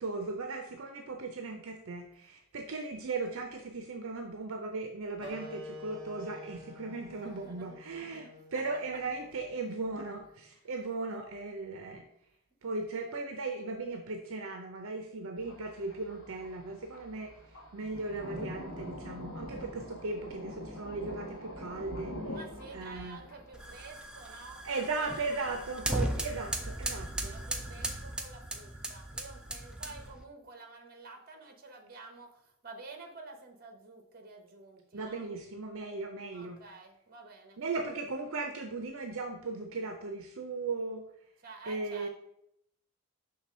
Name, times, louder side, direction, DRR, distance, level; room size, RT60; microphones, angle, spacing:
voice 1, 0.0-12.1 12.6-17.3 17.7-22.4 22.7-23.3 24.6-27.4 34.9-36.6 37.6-41.0 41.6-42.1, right 3 dB, 60° right, 4 dB, 0.6 m, -37 dB
Wind instrument woodwind instrument, 5.2-10.3, left 1 dB, 25° right, 1.3 m, -48 dB
voice 2, 7.1-8.6 8.9-9.0 10.7-10.8 22.3-25.5 27.3-35.2 36.3-37.6 41.4-42.1, right 3 dB, 40° right, 4 dB, 0.9 m, -51 dB
Thunder, 15.4-26.7, equal, 65° left, 1.6 m, -45 dB
sound 1, 23.5-30.2, right 1 dB, 5° right, 0.4 m, -37 dB
5.7 x 3.3 x 5.4 m, 0.76 s
head